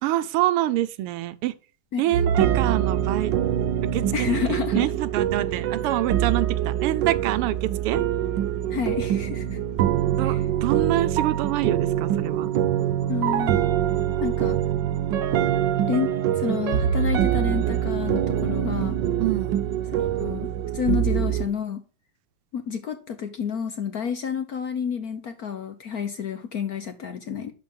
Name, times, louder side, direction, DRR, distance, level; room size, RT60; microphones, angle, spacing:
voice 1, 0.0-1.5 2.0-3.3 3.8-8.0 10.2-12.5 19.2-19.6, right 14 dB, 90° right, 1.6 m, -26 dB
sound 1, 2.1-21.5, right 10 dB, 65° right, 1.3 m, -24 dB
voice 2, 4.1-4.9 8.7-9.6 10.2-10.4 13.1-13.7 14.2-14.6 15.9-19.0 19.9-21.8 22.5-27.5, left 7 dB, 60° left, 1.0 m, -29 dB
11.5 x 4.6 x 5.3 m
omnidirectional pair, 2.4 m